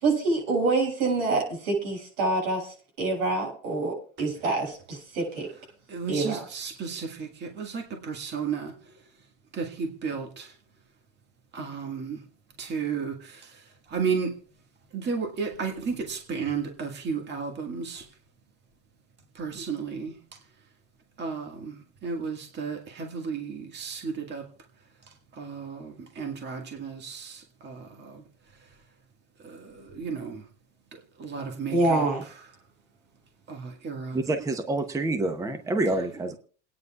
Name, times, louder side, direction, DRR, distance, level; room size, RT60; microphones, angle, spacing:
voice 1, 0.0-2.7 3.0-5.5 6.1-6.4 31.7-32.2, right 3 dB, 85° right, 7.2 m, -26 dB
voice 2, 5.9-9.0 9.5-10.6 11.5-12.2 12.6-14.4 14.9-18.1 19.3-20.4 21.2-24.5 25.1-28.2 28.5-28.7 29.4-30.4 30.9-32.1 32.4-32.5 33.5-34.2, right 5 dB, 30° right, 1.8 m, -34 dB
voice 3, 34.1-36.4, right 2 dB, 10° right, 0.8 m, -27 dB
28.5 x 9.6 x 2.4 m
supercardioid pair, 130°, 37 cm